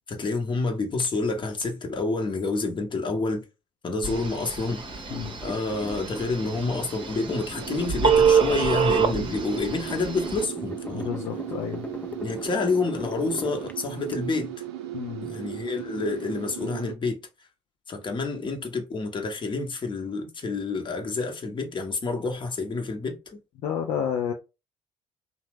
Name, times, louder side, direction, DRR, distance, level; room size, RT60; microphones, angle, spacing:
voice 1, 0.1-3.4 3.8-4.8 5.4-11.1 12.2-14.5 15.2-17.2 17.9-23.2, left 3 dB, 35° left, 0.9 m, -28 dB
Telephone, 4.0-10.4, right 6 dB, 40° right, 0.7 m, -26 dB
sound 1, 4.7-14.2, left 2 dB, 10° left, 0.5 m, -40 dB
sound 2, 7.6-16.9, right 13 dB, 85° right, 0.4 m, -37 dB
voice 2, 10.9-11.8 14.9-15.3 23.6-24.3, left 8 dB, 60° left, 0.5 m, -30 dB
2.7 x 2.0 x 3.4 m
hypercardioid pair, 50°, 14 cm